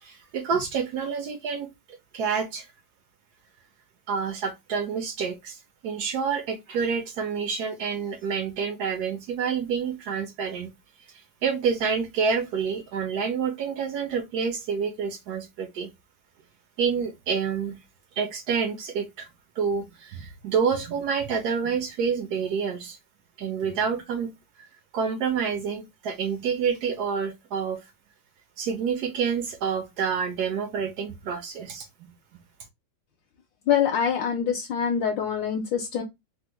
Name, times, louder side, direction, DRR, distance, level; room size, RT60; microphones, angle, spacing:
voice 1, 0.0-1.7 2.1-2.7 4.1-10.7 11.4-15.9 16.8-17.8 18.2-19.3 19.6-23.0 23.4-24.3 24.9-27.8 28.6-31.9, right 6 dB, 75° right, 0.9 m, -28 dB
voice 2, 33.7-36.0, left 8 dB, 75° left, 1.2 m, -25 dB
3.4 x 2.1 x 2.9 m
omnidirectional pair, 2.3 m